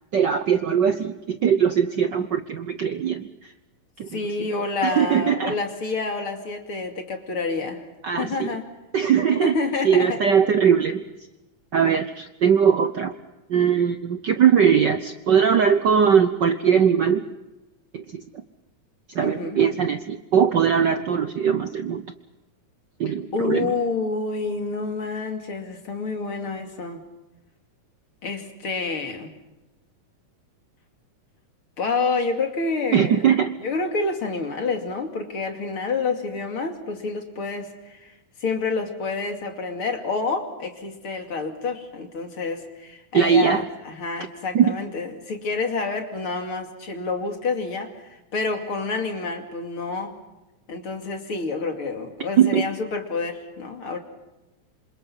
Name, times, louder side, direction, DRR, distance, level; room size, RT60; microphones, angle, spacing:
voice 1, 0.1-3.2 4.0-4.5 4.8-5.5 8.0-8.5 8.9-9.6 9.8-11.0 11.7-13.1 13.5-17.2 17.9-18.2 19.1-22.0 23.0-23.7 32.9-33.5 43.1-43.6 44.5-44.7 52.4-52.7, right 7 dB, 90° right, 9 dB, 0.9 m, -20 dB
voice 2, 4.1-7.8 8.2-8.6 9.4-10.2 19.2-19.6 23.1-27.0 28.2-29.3 31.8-33.2 33.6-38.1 38.4-47.9 48.3-50.2 50.7-54.0, left 4 dB, 45° left, 4 dB, 3.3 m, -28 dB
27.5 x 27.0 x 5.7 m, 1.0 s
omnidirectional pair, 3.4 m